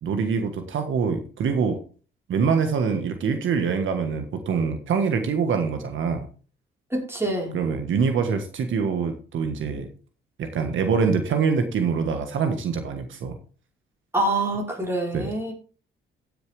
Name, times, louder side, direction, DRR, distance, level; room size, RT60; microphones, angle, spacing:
voice 1, 0.0-1.8 2.3-6.3 7.5-9.9 10.4-13.4 15.1-15.3, right 5 dB, 70° right, 6 dB, 1.5 m, -24 dB
voice 2, 6.9-7.5 14.1-15.5, right 1 dB, 10° right, -1 dB, 4.5 m, -25 dB
16.5 x 6.8 x 3.5 m, 0.38 s
cardioid pair, 95°, 21 cm